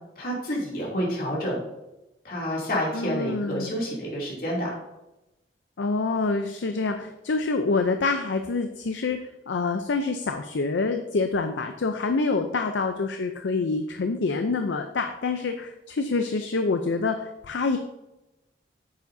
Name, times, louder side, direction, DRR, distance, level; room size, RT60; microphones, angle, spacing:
voice 1, 0.2-1.6 2.2-4.7, equal, 50° left, -4 dB, 2.7 m, -29 dB
voice 2, 2.9-3.7 5.8-9.2 9.5-17.8, left 3 dB, 80° left, 6 dB, 0.5 m, -26 dB
9.3 x 7.3 x 2.7 m, 0.96 s
head